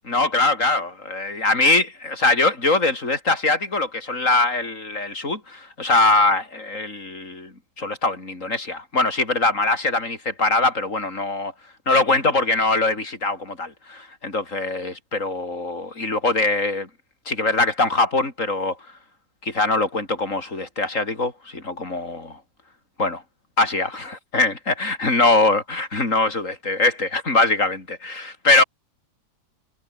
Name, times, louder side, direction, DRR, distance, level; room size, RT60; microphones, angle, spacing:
voice 1, 0.1-11.5 11.9-16.9 17.3-18.8 19.4-22.4 23.0-23.2 23.6-28.6, left 2 dB, 50° left, 5.1 m, -22 dB
omnidirectional pair, 1.8 m